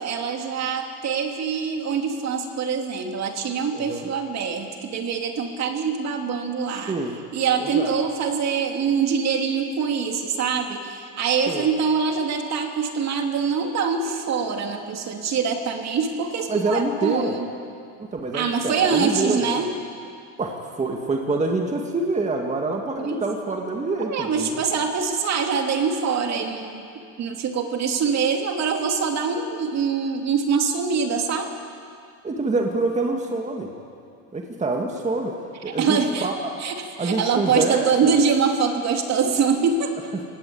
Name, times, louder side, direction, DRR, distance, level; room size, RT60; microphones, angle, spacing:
voice 1, 0.0-6.9 7.3-17.5 18.3-19.7 23.0-23.2 24.0-26.9 27.2-31.5 35.7-36.3 36.6-39.9, right 6 dB, 45° right, 3 dB, 2.7 m, -24 dB
voice 2, 3.7-4.1 6.9-7.2 7.6-7.9 11.5-11.7 16.5-17.3 18.0-19.6 20.4-24.6 32.2-33.7 34.3-35.4 35.6-36.5 37.0-38.2 40.1-40.2, right 3 dB, 20° right, 2 dB, 2.0 m, -26 dB
23.0 x 18.5 x 8.7 m, 2.3 s
cardioid pair, 125°, 37 cm